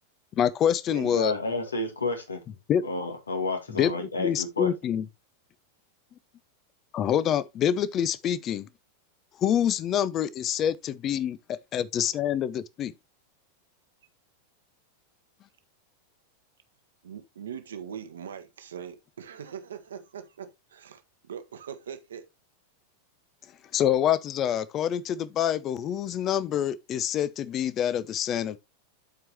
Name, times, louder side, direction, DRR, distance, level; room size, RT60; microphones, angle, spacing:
voice 1, 0.3-1.4 2.7-2.8 3.7-5.1 6.9-8.7 9.4-11.4 11.7-12.9 23.7-28.6, left 9 dB, 30° left, 0.6 m, -26 dB
voice 2, 1.0-2.4 2.8-4.7, left 2 dB, 75° left, 1.8 m, -30 dB
voice 3, 17.0-22.3, right 8 dB, 65° right, 1.2 m, -41 dB
12.0 x 4.7 x 2.9 m
figure-of-eight pair, 90°, 0 cm